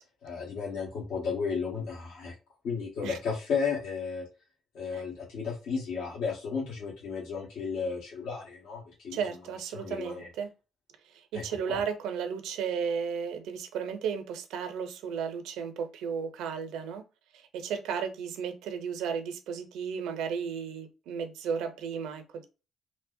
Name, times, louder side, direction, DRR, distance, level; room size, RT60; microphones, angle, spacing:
voice 1, 0.2-2.3 2.6-4.3 4.7-9.2 9.7-10.3 11.3-11.4 11.7-11.8, left 5 dB, 75° left, 1.3 m, -33 dB
voice 2, 9.1-10.5 11.1-17.0 17.3-22.5, right 6 dB, 90° right, 0.5 m, -34 dB
3.1 x 2.1 x 2.5 m
cardioid pair, 90°, 0 cm